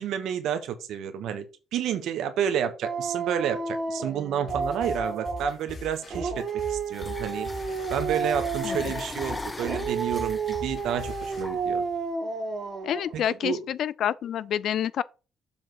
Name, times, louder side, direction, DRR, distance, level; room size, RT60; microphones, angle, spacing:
voice 1, 0.0-1.4 1.7-7.5 7.9-11.8 13.1-13.6, right 9 dB, 80° right, 1.3 m, -30 dB
Dog, 2.8-5.6 6.1-9.2 9.6-13.1, right 4 dB, 45° right, 1.4 m, -31 dB
sound 1, 4.5-11.4, left 3 dB, 50° left, 4.3 m, -41 dB
sound 2, 6.9-12.0, left 2 dB, 15° left, 0.6 m, -40 dB
voice 2, 8.6-8.9 12.8-15.0, left 10 dB, 70° left, 0.4 m, -28 dB
7.3 x 3.6 x 6.3 m
cardioid pair, 90°, 0 cm